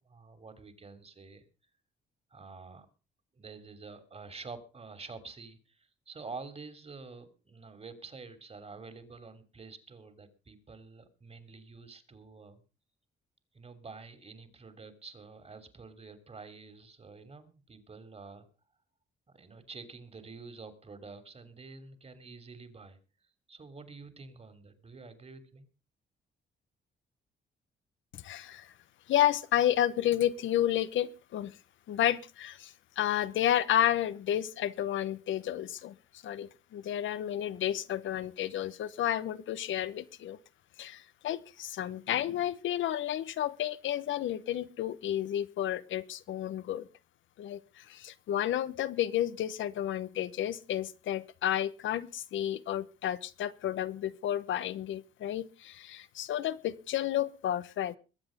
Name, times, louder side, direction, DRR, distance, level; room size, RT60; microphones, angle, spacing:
voice 1, 0.0-1.5 2.3-2.9 3.3-12.6 13.5-18.5 19.3-25.7, right 4 dB, 30° right, 3.1 m, -48 dB
voice 2, 28.1-28.7 29.1-31.6 31.9-35.9 36.2-40.4 40.8-46.9 47.4-57.9, left 11 dB, 75° left, 1.0 m, -31 dB
22.0 x 8.0 x 5.2 m
cardioid pair, 90°, 20 cm